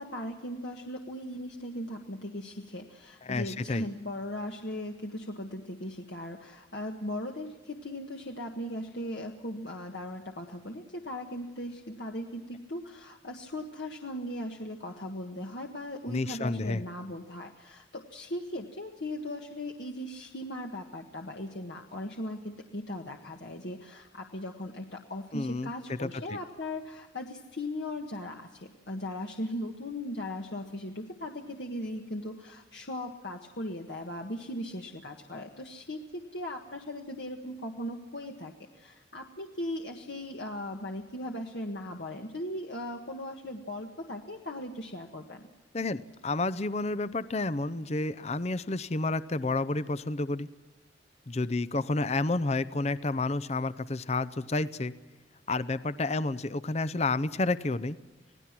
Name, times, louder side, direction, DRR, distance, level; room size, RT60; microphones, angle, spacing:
voice 1, 0.0-45.5, left 1 dB, 65° left, 2 dB, 1.6 m, -38 dB
voice 2, 3.2-3.8 16.1-16.8 25.3-26.4 45.7-50.5 51.3-54.9 55.5-58.0, left 2 dB, 35° left, 15 dB, 0.6 m, -30 dB
27.0 x 18.5 x 6.0 m, 1.2 s
head